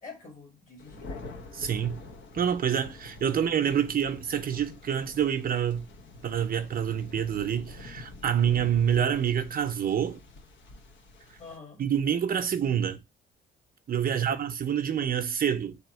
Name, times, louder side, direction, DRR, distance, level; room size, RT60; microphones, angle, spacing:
voice 1, 0.0-1.2 3.3-3.4 11.4-11.8 14.1-14.4, left 4 dB, 40° left, 1.9 m, -47 dB
Thunder, 0.8-11.6, left 2 dB, 70° left, 1.0 m, -46 dB
voice 2, 1.5-2.0 2.3-5.9 6.2-10.2 11.8-13.0 13.9-15.8, right 8 dB, 45° right, 0.6 m, -27 dB
3.4 x 2.8 x 4.2 m
cardioid pair, 90°, 20 cm